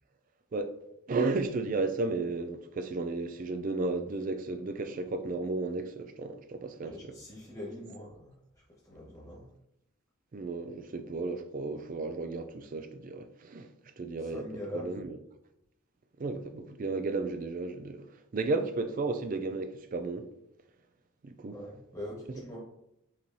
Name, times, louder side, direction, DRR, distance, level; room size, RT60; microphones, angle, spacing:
voice 1, 1.1-7.1 10.3-13.7 14.0-14.5 14.7-15.2 16.2-18.0 18.3-20.3 21.2-21.6, right 3 dB, 35° right, 0.3 m, -33 dB
voice 2, 6.8-9.5 14.2-15.1 21.5-22.6, left 1 dB, 15° left, 1.4 m, -43 dB
5.7 x 3.1 x 2.7 m
head